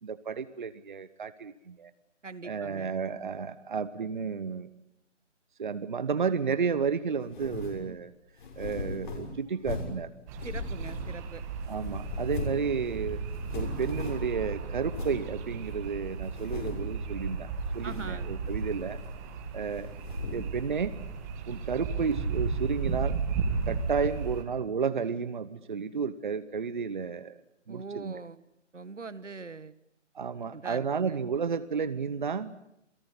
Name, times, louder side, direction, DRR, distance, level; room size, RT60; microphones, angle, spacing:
voice 1, 0.0-1.9 2.4-4.7 5.6-8.1 8.6-10.1 11.7-13.2 13.5-17.5 17.7-19.0 19.5-19.9 20.3-20.9 21.5-23.2 23.7-27.3 27.7-28.2 30.1-32.5, right 6 dB, 40° right, 14 dB, 1.0 m, -32 dB
voice 2, 2.2-2.9 10.4-11.4 17.8-18.3 27.7-28.4 28.7-29.7 30.5-31.2, right 4 dB, 75° right, 16 dB, 1.5 m, -42 dB
sound 1, 7.3-7.8 8.4-10.0 10.4-11.3 11.7-12.7 12.9-13.0 13.3-14.4 14.9-15.2 15.7-15.8 16.3-16.9 17.7-18.2 18.4-19.3 19.7-20.5, left 3 dB, 40° left, 6.3 m, -38 dB
sound 2, 10.3-24.4, right 5 dB, 15° right, 1.7 m, -34 dB
28.0 x 17.5 x 9.8 m, 0.82 s
figure-of-eight pair, 155°, 37 cm